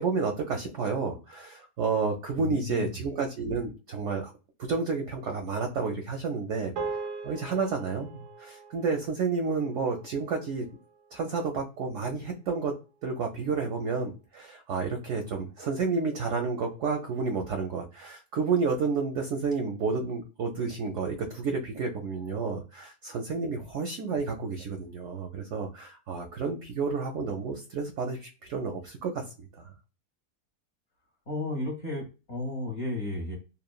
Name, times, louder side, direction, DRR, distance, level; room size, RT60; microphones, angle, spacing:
voice 1, 0.0-4.3 4.6-6.7 7.2-10.7 11.1-12.7 13.0-29.2 29.6-29.7, right 4 dB, 70° right, 3 dB, 0.8 m, -30 dB
voice 2, 2.4-3.0 31.3-33.4, left 2 dB, 55° left, 0 dB, 0.9 m, -33 dB
sound 1, 6.8-11.3, right 4 dB, 85° right, 1.1 m, -40 dB
3.1 x 2.1 x 2.2 m, 0.32 s
omnidirectional pair, 1.6 m